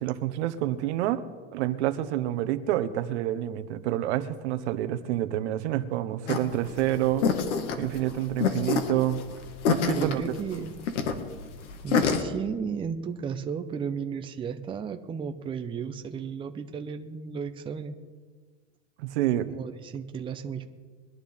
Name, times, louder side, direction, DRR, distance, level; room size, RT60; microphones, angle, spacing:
voice 1, 0.0-1.2 1.5-7.3 7.8-9.2 9.7-10.2 19.0-19.5, right 13 dB, 70° right, 11 dB, 1.1 m, -28 dB
sound 1, 6.3-12.2, left 6 dB, 90° left, 1.9 m, -27 dB
voice 2, 9.9-10.8 11.8-18.0 19.5-20.6, right 6 dB, 15° right, 6 dB, 0.7 m, -34 dB
22.5 x 11.5 x 3.6 m, 1.5 s
supercardioid pair, 145°, 35 cm